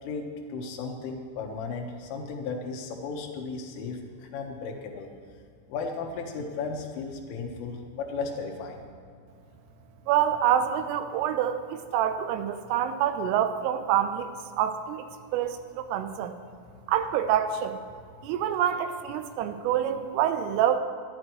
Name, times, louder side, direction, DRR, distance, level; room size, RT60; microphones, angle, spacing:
voice 1, 0.0-5.1 5.7-8.9, left 4 dB, 80° left, 2 dB, 3.9 m, -35 dB
voice 2, 10.1-14.3 14.6-15.1 15.3-16.3 16.9-17.8 18.2-20.8, right 10 dB, 85° right, 9 dB, 3.4 m, -26 dB
25.5 x 11.0 x 3.1 m, 2.3 s
omnidirectional pair, 5.7 m